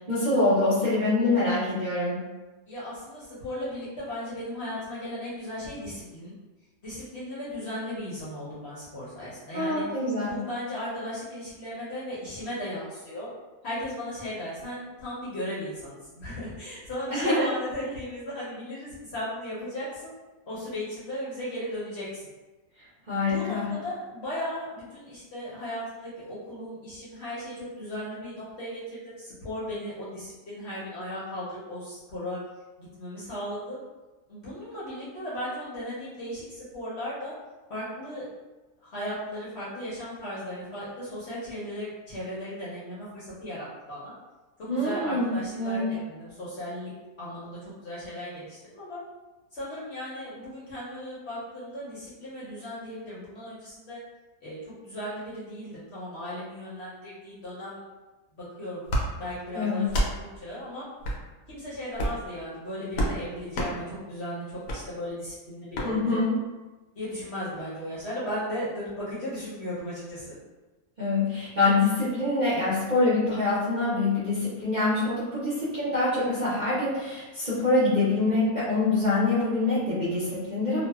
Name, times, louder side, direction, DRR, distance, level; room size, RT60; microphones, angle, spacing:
voice 1, 0.1-2.2 9.5-10.3 17.1-17.5 23.1-23.7 44.7-45.3 45.6-45.9 59.5-59.9 65.8-66.3 71.0-80.9, left 2 dB, 45° right, -12 dB, 0.6 m, -25 dB
voice 2, 2.7-6.3 6.8-13.3 13.6-20.2 20.5-22.3 23.0-32.4 32.8-33.8 34.3-37.3 37.7-38.3 38.8-44.1 44.7-46.9 47.2-49.0 49.5-54.0 54.4-57.8 58.4-58.9 59.2-60.9 61.5-66.3 66.9-70.4, equal, 55° left, -9 dB, 0.8 m, -36 dB
sound 1, 58.9-59.1 59.9-60.1 61.0-61.2 61.9-62.2 62.9-63.2 63.5-63.7 64.7-64.8 65.7-65.9, equal, 75° left, 1.0 m, -27 dB
2.7 x 2.1 x 2.3 m, 1.2 s
omnidirectional pair, 1.7 m